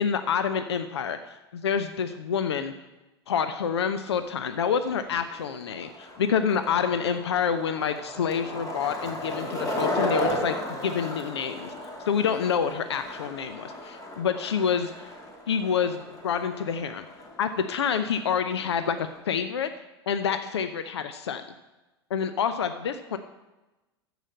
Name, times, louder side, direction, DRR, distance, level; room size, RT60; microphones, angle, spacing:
voice 1, 0.0-2.7 3.3-11.7 12.1-14.9 15.5-17.0 17.4-19.7 20.1-21.4 22.1-23.2, left 7 dB, 75° left, 10 dB, 0.7 m, -27 dB
Skateboard, 4.2-19.3, left 1 dB, 25° left, 2.3 m, -35 dB
14.0 x 5.0 x 7.8 m, 1.1 s
figure-of-eight pair, 85°, 14 cm